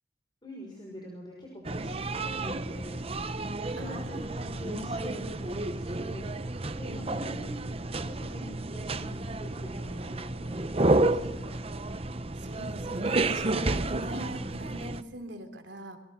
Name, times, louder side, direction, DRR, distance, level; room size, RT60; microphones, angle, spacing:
voice 1, 0.4-3.1 3.6-6.4 6.7-7.7 8.0-11.6 14.2-14.3, equal, 25° left, -1 dB, 6.0 m, -45 dB
sound 1, 1.6-15.0, right 2 dB, 30° right, 0.8 m, -31 dB
voice 2, 3.8-4.4 6.9-7.3 12.3-16.0, right 1 dB, 70° right, 6 dB, 3.5 m, -42 dB
28.0 x 22.5 x 5.9 m, 0.82 s
head